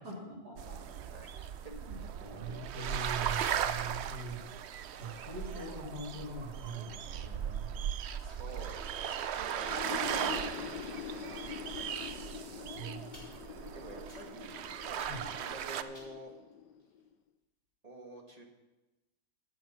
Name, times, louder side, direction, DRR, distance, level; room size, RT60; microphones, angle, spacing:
voice 1, 0.0-1.0 1.6-4.4 4.7-7.7 12.7-13.4 15.1-15.3, right 2 dB, 65° right, -3 dB, 3.3 m, -43 dB
sound 1, 0.6-15.8, right 9 dB, 80° right, 0.5 m, -38 dB
voice 2, 1.1-1.5 8.2-11.4 11.7-12.9 13.7-16.3 17.8-18.4, right 1 dB, 25° right, 2 dB, 1.6 m, -50 dB
sound 2, 9.5-17.1, left 8 dB, 85° left, 1.3 m, -44 dB
sound 3, 12.0-12.6 13.1-13.6 14.1-14.5 15.0-15.4 15.9-17.1, left 1 dB, 15° left, 6.0 m, -57 dB
12.5 x 10.5 x 5.7 m, 1.1 s
omnidirectional pair, 1.8 m